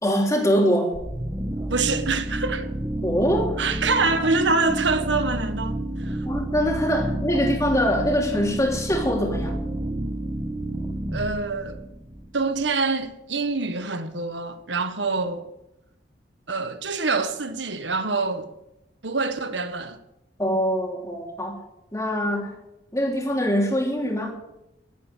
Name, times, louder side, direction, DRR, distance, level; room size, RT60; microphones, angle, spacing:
voice 1, 0.0-1.0 3.0-3.6 6.2-9.6 20.4-21.6 21.9-22.5 22.9-24.3, equal, 20° left, 3.3 m, -23 dB
sound 1, 0.9-12.7, right 1 dB, 20° right, 1.2 m, -30 dB
voice 2, 1.7-2.7 3.6-6.2 11.1-11.8 12.3-15.5 16.5-18.5 19.0-20.0, right 3 dB, 90° right, 1.6 m, -25 dB
12.5 x 12.0 x 8.1 m
head